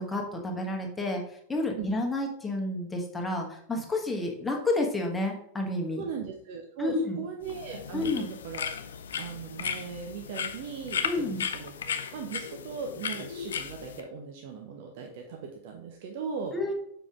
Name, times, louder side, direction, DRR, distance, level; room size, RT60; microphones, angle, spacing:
voice 1, 0.0-6.0 6.8-7.2 7.9-8.2 11.0-11.4 16.5-16.7, left 2 dB, 10° left, 0 dB, 1.4 m, -30 dB
voice 2, 5.9-8.7 9.1-16.6, right 6 dB, 50° right, 3 dB, 0.8 m, -39 dB
sound 1, 7.4-14.0, left 7 dB, 65° left, 0.5 m, -36 dB
7.0 x 5.0 x 3.6 m, 0.72 s
figure-of-eight pair, 90°, 0 cm